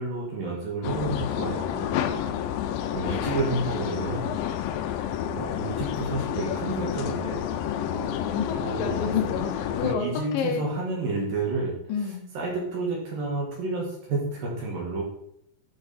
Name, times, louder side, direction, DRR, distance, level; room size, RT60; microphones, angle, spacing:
voice 1, 0.0-2.3 2.9-4.4 5.3-7.4 8.6-9.1 9.8-11.7 12.0-15.0, right 3 dB, 65° right, -2 dB, 3.0 m, -30 dB
sound 1, 0.8-10.0, left 10 dB, 85° left, 2.0 m, -29 dB
voice 2, 7.9-10.1 10.3-10.6 11.9-12.3, left 6 dB, 70° left, 1 dB, 2.6 m, -29 dB
10.5 x 4.7 x 4.2 m, 0.76 s
omnidirectional pair, 4.6 m